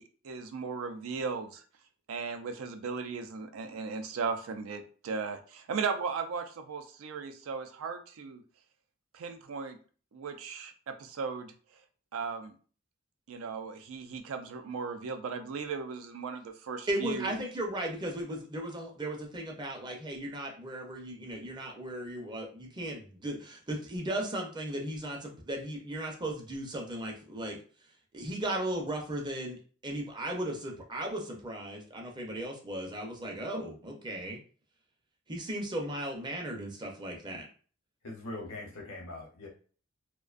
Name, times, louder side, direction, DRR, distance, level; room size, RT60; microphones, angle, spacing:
voice 1, 0.0-1.6 2.1-8.4 9.1-9.8 10.1-11.8 12.1-12.5 13.3-17.3, right 5 dB, 85° right, 7 dB, 0.4 m, -37 dB
voice 2, 16.9-27.6 28.1-29.6 29.8-34.4 35.3-37.4, right 1 dB, 20° right, 0 dB, 0.5 m, -36 dB
voice 3, 38.0-39.5, left 2 dB, 75° left, 0 dB, 0.8 m, -41 dB
2.5 x 2.1 x 2.4 m, 0.41 s
head